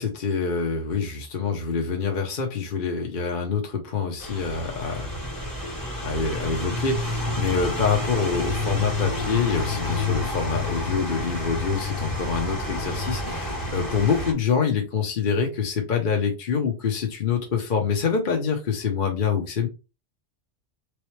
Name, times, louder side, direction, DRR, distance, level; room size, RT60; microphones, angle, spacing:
voice 1, 0.0-5.1 6.0-19.7, left 5 dB, 50° left, 2 dB, 0.9 m, -26 dB
sound 1, 4.2-14.3, left 2 dB, 20° left, 1.0 m, -29 dB
3.9 x 3.2 x 3.1 m, 0.29 s
omnidirectional pair, 1.2 m